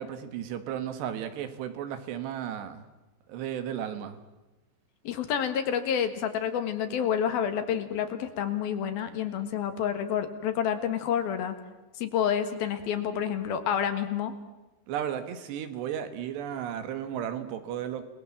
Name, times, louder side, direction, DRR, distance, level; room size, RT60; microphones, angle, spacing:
voice 1, 0.0-2.8 3.3-4.2 14.9-18.1, right 9 dB, 80° right, 10 dB, 3.7 m, -34 dB
voice 2, 5.0-11.6 12.0-14.3, left 8 dB, 65° left, 9 dB, 3.3 m, -29 dB
29.0 x 20.0 x 7.4 m, 1.1 s
omnidirectional pair, 4.9 m